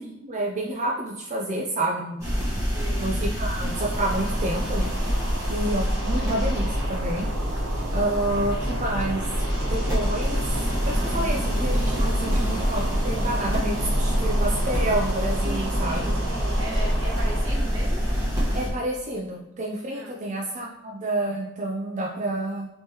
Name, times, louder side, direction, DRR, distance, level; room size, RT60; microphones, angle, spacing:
voice 1, 0.0-2.2 3.0-4.9 5.5-7.3 7.9-9.2 9.7-10.6 10.8-16.1 18.5-22.7, right 1 dB, 40° right, -2 dB, 0.4 m, -29 dB
sound 1, 2.2-18.7, equal, 15° right, 1.2 m, -25 dB
voice 2, 2.6-3.1 15.4-18.0 19.9-20.2, right 1 dB, 75° right, -4 dB, 1.1 m, -37 dB
sound 2, 3.7-17.4, right 2 dB, 90° right, 0.6 m, -37 dB
3.5 x 3.1 x 2.8 m, 0.91 s
head